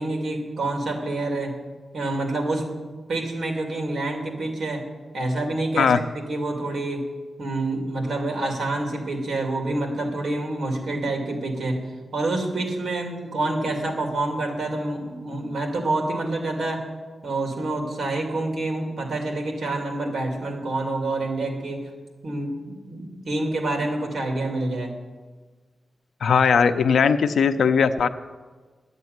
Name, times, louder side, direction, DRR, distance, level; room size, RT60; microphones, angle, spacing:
voice 1, 0.0-1.6 1.9-2.7 3.1-4.9 5.1-7.1 7.4-11.8 12.1-16.9 17.2-21.9 22.2-24.9, right 2 dB, 55° right, 2 dB, 2.8 m, -27 dB
voice 2, 26.2-28.1, left 6 dB, 75° left, 10 dB, 0.6 m, -19 dB
12.0 x 8.1 x 9.5 m, 1.4 s
wide cardioid pair, 165°, 0 cm